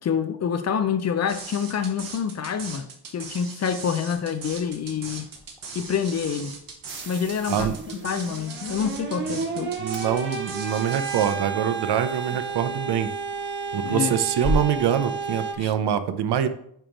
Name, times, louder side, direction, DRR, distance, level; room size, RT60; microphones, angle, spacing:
voice 1, 0.0-2.9 3.1-5.3 5.7-6.5 7.1-7.7 8.0-9.7 13.8-14.1 15.6-15.7, left 7 dB, 40° left, 0.5 m, -27 dB
sound 1, 1.3-11.3, right 4 dB, 55° right, 1.5 m, -39 dB
sound 2, 4.3-15.5, left 1 dB, 10° left, 1.4 m, -38 dB
sound 3, 6.9-15.5, right 5 dB, 30° right, 0.7 m, -32 dB
voice 2, 9.8-13.1 13.7-16.5, right 9 dB, 75° right, 0.7 m, -24 dB
8.9 x 3.1 x 5.1 m
wide cardioid pair, 165°, 41 cm